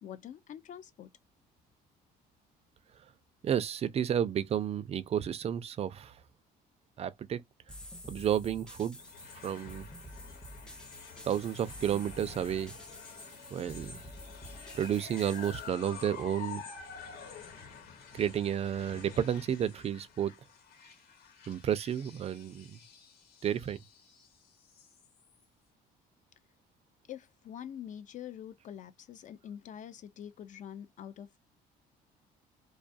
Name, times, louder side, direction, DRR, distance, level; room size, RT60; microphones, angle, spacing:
voice 1, 0.0-1.1 27.1-31.4, left 9 dB, 50° left, 0.4 m, -45 dB
voice 2, 3.4-6.1 7.0-7.4 8.1-9.0 9.4-9.9 11.3-12.7 13.5-14.0 14.7-16.6 18.1-20.3 21.5-22.8 23.4-23.8, right 9 dB, 40° right, 0.4 m, -31 dB
sound 1, 7.7-15.7, equal, 5° left, 0.6 m, -49 dB
sound 2, 9.0-25.4, left 6 dB, 75° left, 1.1 m, -49 dB
2.3 x 2.2 x 2.5 m
cardioid pair, 110°, 17 cm